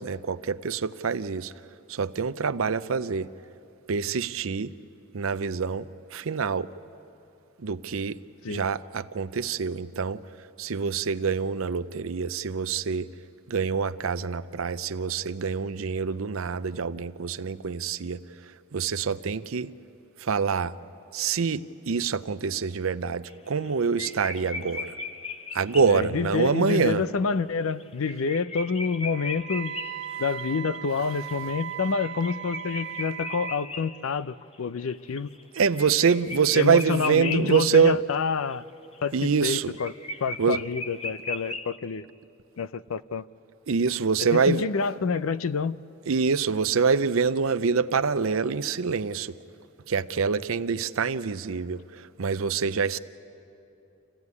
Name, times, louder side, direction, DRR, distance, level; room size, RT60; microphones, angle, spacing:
voice 1, 0.0-1.5 1.9-3.3 3.9-4.7 5.1-6.7 7.6-8.2 8.5-10.2 10.6-13.1 13.5-18.2 18.7-19.7 20.2-20.7 21.1-25.0 25.5-27.0 35.6-38.0 39.1-39.7 40.4-40.6 43.7-44.6 46.1-49.4 49.9-53.0, right 5 dB, 85° right, 14 dB, 0.6 m, -25 dB
sound 1, 23.3-23.7 24.0-26.3 26.9-27.0 27.3-27.4 27.7-34.6 34.9-37.8 38.1-38.2 38.5-41.8, left 2 dB, 30° left, 0.8 m, -38 dB
voice 2, 25.9-29.7 30.2-35.3 36.5-38.7 39.0-39.9 40.2-42.1 42.6-43.3 44.3-45.8, left 5 dB, 90° left, 16 dB, 0.5 m, -28 dB
Wind instrument woodwind instrument, 29.1-33.6, right 11 dB, 55° right, 1.1 m, -37 dB
27.5 x 15.5 x 9.6 m, 2.9 s
head